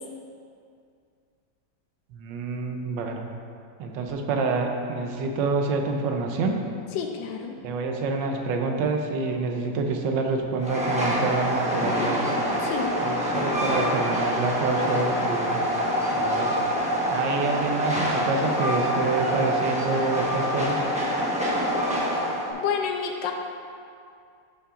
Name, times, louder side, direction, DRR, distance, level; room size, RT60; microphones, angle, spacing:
voice 1, 2.1-3.2 3.8-6.5 7.6-12.2 13.0-15.6 16.1-16.6 17.1-20.8, right 3 dB, 75° right, 3 dB, 1.4 m, -27 dB
voice 2, 6.9-7.6 12.6-13.0 22.5-23.3, left 7 dB, 85° left, 3 dB, 1.3 m, -29 dB
Train, 10.6-22.5, equal, 5° right, 0.7 m, -26 dB
12.5 x 5.6 x 2.5 m, 2.3 s
omnidirectional pair, 2.0 m